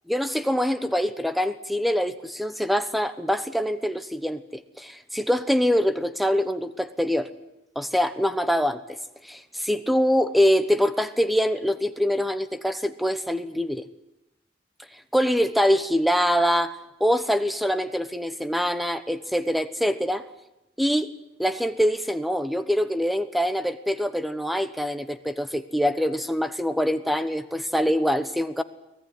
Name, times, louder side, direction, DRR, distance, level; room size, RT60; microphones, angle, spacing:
voice 1, 0.1-4.4 4.8-7.3 7.7-9.0 9.2-13.8 15.1-20.2 20.8-21.1 21.4-28.6, equal, ahead, 12 dB, 1.0 m, -24 dB
24.0 x 17.5 x 9.8 m, 0.91 s
head